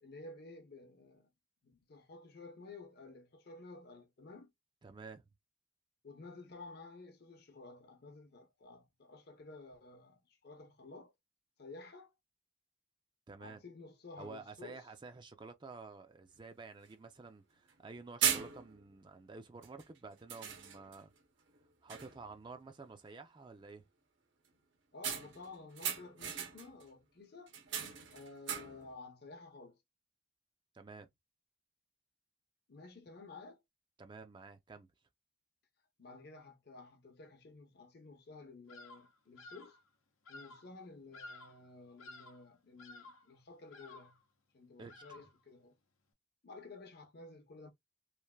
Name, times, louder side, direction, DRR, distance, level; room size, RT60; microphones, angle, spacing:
voice 1, 0.0-1.3 1.6-4.5 6.0-11.1 11.6-12.1 13.4-14.8 24.9-27.6 28.1-29.8 32.7-33.6 36.0-39.8 40.3-44.2 44.5-45.8 46.4-47.7, left 3 dB, 55° left, 0.7 m, -53 dB
voice 2, 4.8-5.2 13.3-13.6 14.2-21.1 21.8-23.8 30.7-31.1 34.0-34.9 44.8-45.2, right 4 dB, 25° right, 0.3 m, -51 dB
sound 1, 16.4-16.5 16.9-17.0 17.7-17.9 18.2-18.9 19.6-19.8 20.3-21.1 21.5-21.6 21.9-22.3 25.0-26.8 27.5-28.9, right 8 dB, 65° right, 0.7 m, -38 dB
Bird vocalization bird call bird song, 38.7-39.1 39.4-39.8 40.2-40.7 41.1-41.7 42.0-42.5 42.8-43.3 43.7-44.2 44.9-45.4, left 2 dB, 90° left, 0.7 m, -53 dB
3.2 x 2.5 x 2.2 m
head